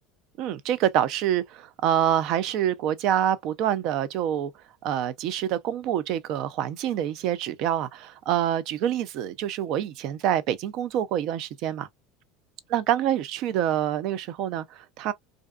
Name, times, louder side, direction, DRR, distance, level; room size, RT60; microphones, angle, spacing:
voice 1, 0.4-4.5 4.8-11.9 12.7-15.1, right 10 dB, 60° right, 0.4 m, -26 dB
2.5 x 2.3 x 2.2 m
hypercardioid pair, 90°, 0 cm